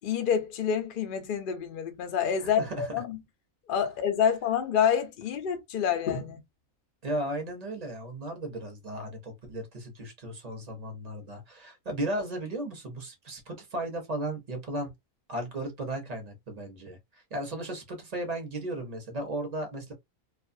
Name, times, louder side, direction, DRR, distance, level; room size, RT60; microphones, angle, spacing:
voice 1, 0.0-3.2 3.7-6.4, left 8 dB, 60° left, 0.5 m, -27 dB
voice 2, 2.4-3.0 7.0-14.9 15.3-19.9, right 1 dB, 40° right, 0.6 m, -35 dB
2.4 x 2.3 x 2.5 m
omnidirectional pair, 1.4 m